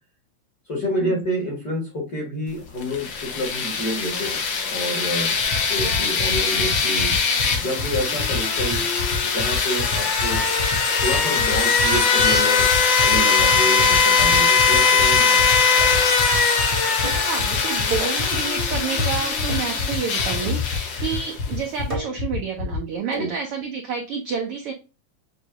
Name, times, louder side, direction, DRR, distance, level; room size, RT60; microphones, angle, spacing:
voice 1, 0.7-5.3 5.7-7.2 7.6-8.8 9.2-10.4 11.0-12.7 13.0-15.4 23.2-23.3, equal, 45° left, -1 dB, 1.2 m, -28 dB
sound 1, 2.8-21.5, left 5 dB, 85° left, 1.0 m, -21 dB
sound 2, 5.4-22.8, left 3 dB, 65° left, 1.3 m, -29 dB
sound 3, 15.8-16.2 17.0-17.3 18.0-18.3 19.0-19.2 19.5-19.8 20.5-21.0 21.9-22.3 23.1-23.4, left 2 dB, 50° right, 0.4 m, -31 dB
voice 2, 17.2-24.7, right 6 dB, 90° right, 3 dB, 1.2 m, -29 dB
7.4 x 2.7 x 2.4 m, 0.30 s
omnidirectional pair, 3.4 m